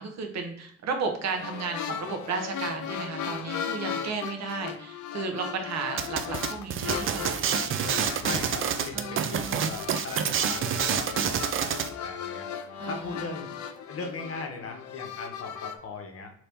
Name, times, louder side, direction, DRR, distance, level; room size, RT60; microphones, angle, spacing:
voice 1, 0.0-7.6 8.9-9.7 12.8-13.3, right 4 dB, 60° right, 4 dB, 0.8 m, -34 dB
sound 1, 1.3-15.8, left 8 dB, 70° left, 0.5 m, -37 dB
sound 2, 6.0-11.9, right 8 dB, 45° right, 0.4 m, -28 dB
voice 2, 8.2-12.5 12.8-13.5 13.9-16.3, left 3 dB, 50° left, 3 dB, 0.8 m, -39 dB
2.8 x 2.7 x 3.5 m, 0.67 s
cardioid pair, 90°, 30 cm